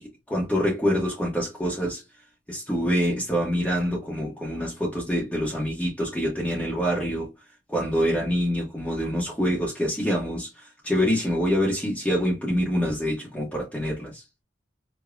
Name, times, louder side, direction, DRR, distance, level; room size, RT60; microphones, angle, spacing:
voice 1, 0.0-2.0 2.5-7.3 7.7-14.2, equal, 5° left, 0.7 m, -26 dB
4.9 x 2.0 x 2.3 m
head